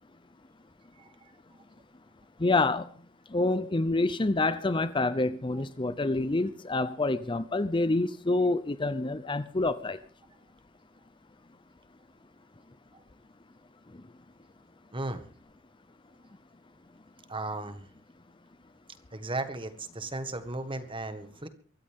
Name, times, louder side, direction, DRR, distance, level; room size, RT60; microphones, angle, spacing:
voice 1, 1.0-1.3 5.5-5.6 12.9-13.0 14.9-15.3 17.3-17.9 19.1-21.5, right 2 dB, 25° right, 1.7 m, -36 dB
voice 2, 2.4-2.9 3.3-10.0, left 2 dB, 25° left, 0.6 m, -27 dB
24.0 x 14.0 x 3.7 m
head